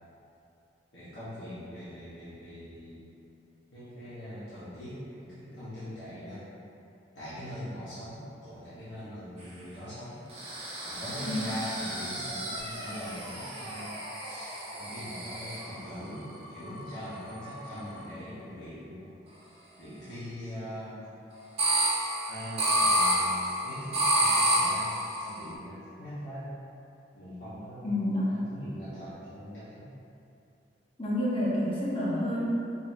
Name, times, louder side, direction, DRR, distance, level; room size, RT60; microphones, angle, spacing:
voice 1, 0.9-3.0 3.7-6.4 7.1-10.2 10.8-19.1 19.8-21.1 22.3-26.5 27.1-27.9 28.3-29.9, equal, 85° left, -14 dB, 1.2 m, -42 dB
sound 1, 10.3-15.8 16.5-18.0 21.6-25.4, right 1 dB, 35° right, 0.7 m, -29 dB
voice 2, 27.8-28.3 31.0-32.5, left 1 dB, 30° left, -8 dB, 0.9 m, -28 dB
5.1 x 2.7 x 2.7 m, 2.7 s
head